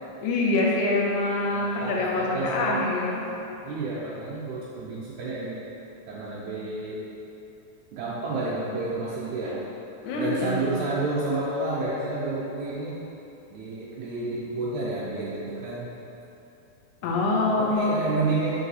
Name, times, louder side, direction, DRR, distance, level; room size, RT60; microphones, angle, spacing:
voice 1, 0.2-3.3 10.0-10.7 17.0-18.1, left 2 dB, 85° left, -2 dB, 2.0 m, -25 dB
voice 2, 1.5-2.9 3.7-5.6 6.1-7.0 7.9-9.7 10.1-13.0 13.5-15.9 17.0-18.6, right 3 dB, 80° right, -7 dB, 1.8 m, -30 dB
4.6 x 2.6 x 4.0 m, 2.9 s
omnidirectional pair, 3.4 m